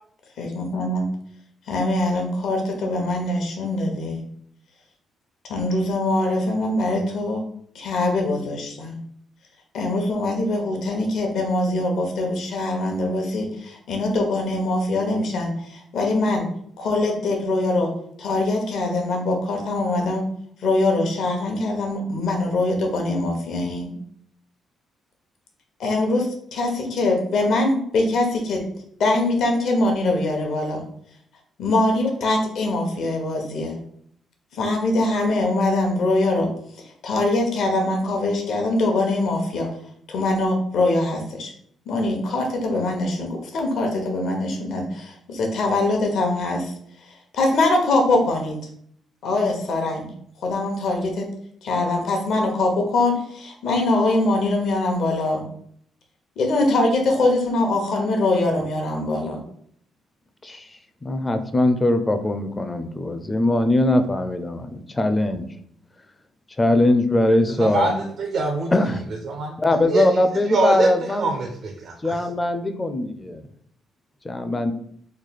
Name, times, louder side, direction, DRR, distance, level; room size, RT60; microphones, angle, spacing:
voice 1, 0.4-1.1 1.7-4.2 5.5-7.4 7.7-9.0 9.7-16.5 16.8-17.9 18.2-20.2 20.6-23.9 25.8-28.6 29.0-30.8 31.6-33.8 34.5-36.5 36.8-39.7 40.1-41.5 41.9-46.7 47.0-48.6 49.2-50.1 50.4-51.2 51.6-55.4 56.4-59.4, left 2 dB, 70° left, 2 dB, 0.9 m, -23 dB
voice 2, 61.0-65.4 66.6-68.0 68.7-69.0 69.6-71.3 72.0-73.4 74.2-74.7, left 1 dB, 20° left, 8 dB, 0.4 m, -21 dB
voice 3, 67.6-68.7 69.2-69.5 69.9-70.0 70.5-70.9 71.2-72.2, right 3 dB, 65° right, 2 dB, 0.5 m, -24 dB
3.2 x 2.2 x 4.0 m, 0.66 s
cardioid pair, 90°, 0 cm